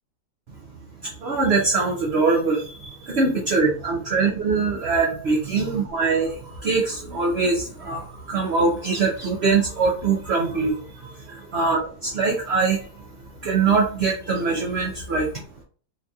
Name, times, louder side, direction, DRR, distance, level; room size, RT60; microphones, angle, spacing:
voice 1, 1.0-13.0 13.4-15.4, right 4 dB, 60° right, -2 dB, 0.6 m, -23 dB
3.8 x 2.8 x 2.3 m, 0.43 s
omnidirectional pair, 1.9 m